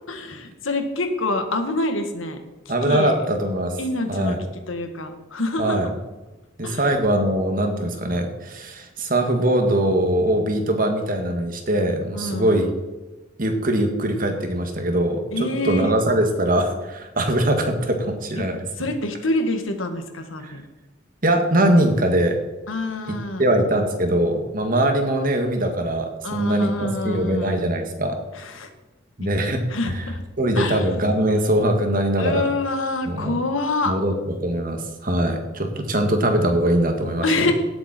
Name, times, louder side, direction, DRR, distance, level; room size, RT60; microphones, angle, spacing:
voice 1, 0.1-2.4 2.8-3.1 3.8-4.4 4.7-5.8 6.6-6.9 12.1-12.6 15.3-15.9 18.4-18.5 18.8-20.6 22.7-23.4 26.2-27.8 28.3-28.7 29.7-30.2 30.5-31.0 32.2-33.9 37.2-37.5, left 2 dB, 90° left, 6 dB, 1.7 m, -26 dB
voice 2, 2.7-3.8 4.1-4.4 5.6-5.9 6.6-12.7 13.4-15.2 15.6-18.6 20.4-20.6 21.2-22.4 23.1-26.7 27.0-28.2 29.2-29.6 29.9-30.0 30.4-32.4 33.0-33.4 33.9-34.1 34.4-37.5, right 1 dB, 45° right, 4 dB, 1.9 m, -22 dB
17.5 x 7.7 x 4.4 m, 1.1 s
head